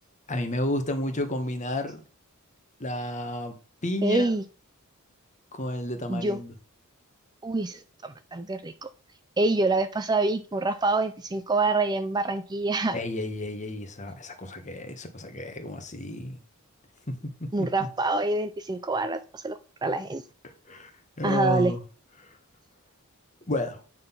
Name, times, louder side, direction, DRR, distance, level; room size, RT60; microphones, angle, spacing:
voice 1, 0.3-2.0 2.8-3.6 3.8-4.3 5.5-6.5 12.9-16.4 17.1-17.7 20.7-20.9 21.2-21.8 22.2-22.3 23.5-23.8, left 1 dB, 35° left, 1.3 m, -31 dB
voice 2, 4.0-4.4 6.1-6.4 7.4-8.9 9.4-13.0 17.5-20.2 21.2-21.7, right 2 dB, 20° right, 0.4 m, -26 dB
9.0 x 3.9 x 5.7 m
head